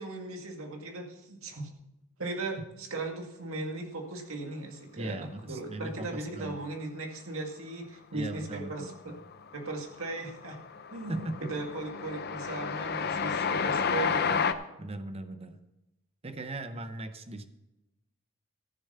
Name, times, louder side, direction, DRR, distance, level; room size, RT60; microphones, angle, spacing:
voice 1, 0.0-1.7 2.2-9.1 9.5-10.6 10.9-14.4, right 2 dB, 70° right, 2 dB, 2.1 m, -37 dB
voice 2, 5.0-6.6 8.1-9.2 11.1-11.5 14.8-15.6 16.2-17.5, right 2 dB, 25° right, 9 dB, 0.7 m, -39 dB
Train, 8.8-9.3 9.6-14.5, left 6 dB, 45° left, 0.6 m, -31 dB
14.5 x 7.1 x 5.6 m, 0.94 s
head